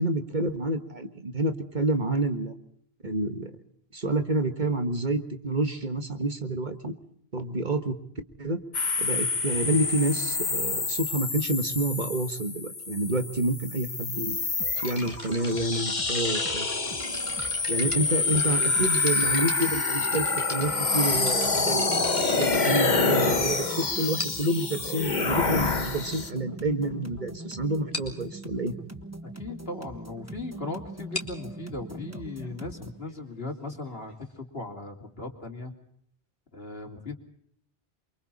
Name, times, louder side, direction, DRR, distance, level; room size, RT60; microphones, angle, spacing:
voice 1, 0.0-2.6 3.0-3.5 3.9-6.9 7.3-8.0 8.4-8.6 9.0-14.4 14.8-16.7 17.7-20.2 20.5-28.7, right 2 dB, 45° right, 7 dB, 1.8 m, -28 dB
sound 1, 8.7-26.3, left 4 dB, 45° left, 1.6 m, -27 dB
sound 2, 14.6-33.0, right 1 dB, 15° right, 1.2 m, -42 dB
sound 3, 14.8-23.6 24.2-24.6 25.4-25.5 26.2-26.3 26.5-26.7 27.0-27.2 27.4-27.5 27.9-28.2 30.9-34.4, left 1 dB, 30° left, 3.1 m, -40 dB
voice 2, 29.2-35.7 36.5-37.1, left 2 dB, 70° left, 3 dB, 3.4 m, -38 dB
28.5 x 24.0 x 4.2 m, 0.69 s
omnidirectional pair, 1.0 m